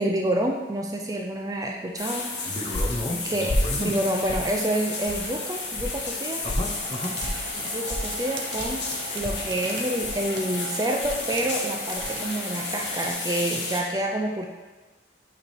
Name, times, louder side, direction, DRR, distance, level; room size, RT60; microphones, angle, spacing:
voice 1, 0.0-2.3 3.2-6.5 7.6-8.9 9.1-14.5, right 1 dB, 20° right, 2 dB, 0.4 m, -28 dB
sound 1, 2.0-13.8, left 3 dB, 75° left, 1.2 m, -32 dB
sound 2, 2.2-12.3, equal, 55° left, 0.9 m, -34 dB
voice 2, 2.4-4.0 6.4-7.2, left 1 dB, 25° left, 1 dB, 0.6 m, -32 dB
sound 3, 6.6-13.1, right 3 dB, 80° right, 0.7 m, -39 dB
8.7 x 3.2 x 4.3 m, 1.3 s
head